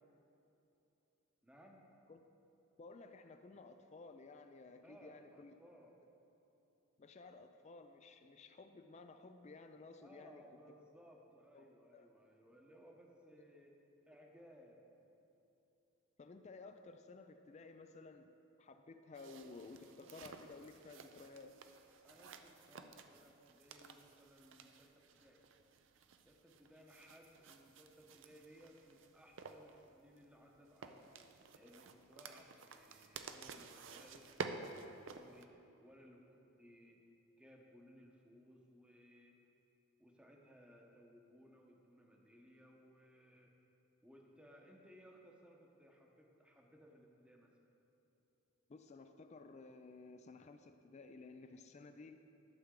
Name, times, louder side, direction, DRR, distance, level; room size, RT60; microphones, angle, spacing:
voice 1, 1.4-1.8 4.8-5.9 10.0-13.7 14.1-14.8 22.0-25.4 26.2-37.0 37.4-39.3 40.0-43.5 44.0-47.5, equal, 5° right, 0 dB, 0.8 m, -62 dB
voice 2, 2.8-5.6 7.0-10.4 11.5-11.7 11.9-12.1 16.2-18.3 18.6-21.6 48.7-52.2, left 3 dB, 30° left, 8 dB, 0.3 m, -55 dB
sound 1, 19.1-35.4, right 4 dB, 60° right, 0.5 m, -52 dB
11.5 x 7.2 x 3.7 m, 2.9 s
head